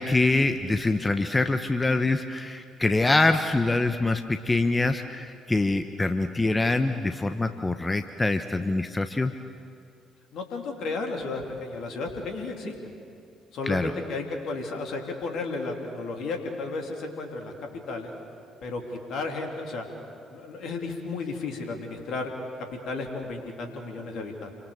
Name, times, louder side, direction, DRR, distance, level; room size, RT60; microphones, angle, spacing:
voice 1, 0.0-9.3 13.7-13.9, left 2 dB, 20° left, 8 dB, 1.1 m, -24 dB
voice 2, 10.3-12.7 13.5-18.1 18.6-18.8 19.1-19.9 20.3-22.3 22.8-24.5, left 3 dB, 55° left, 3 dB, 3.3 m, -33 dB
29.0 x 24.5 x 7.2 m, 2.4 s
figure-of-eight pair, 45°, 0 cm